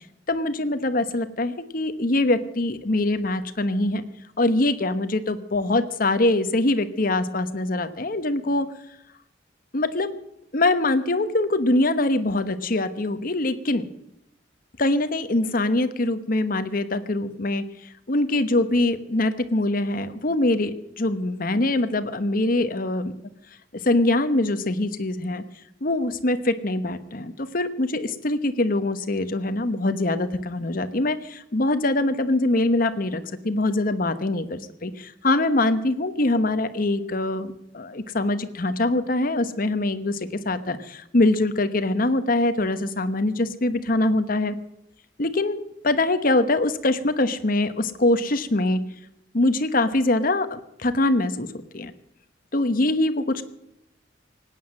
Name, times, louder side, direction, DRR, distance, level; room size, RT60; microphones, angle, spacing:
voice 1, 0.3-4.0 4.4-8.7 9.7-10.2 10.5-13.8 14.8-17.6 18.1-23.1 23.8-25.4 25.8-40.2 40.4-44.6 45.2-48.8 49.3-51.5 51.7-51.9 52.5-53.4, left 2 dB, 50° left, 10 dB, 1.1 m, -23 dB
18.5 x 9.4 x 7.6 m, 0.83 s
head